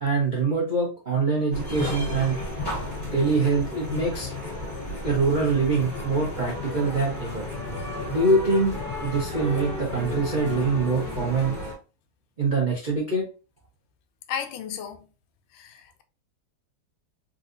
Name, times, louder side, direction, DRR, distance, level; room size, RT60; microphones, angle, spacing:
voice 1, 0.0-2.4 3.1-4.3 5.0-7.5 8.1-11.6 12.4-13.3, right 3 dB, 70° right, 0.4 m, -24 dB
sound 1, 1.5-11.7, left 2 dB, 10° left, 1.4 m, -33 dB
voice 2, 2.6-3.3 4.5-4.7 14.3-15.1 15.5-16.0, left 8 dB, 80° left, 1.5 m, -36 dB
3.9 x 2.7 x 2.5 m
omnidirectional pair, 2.4 m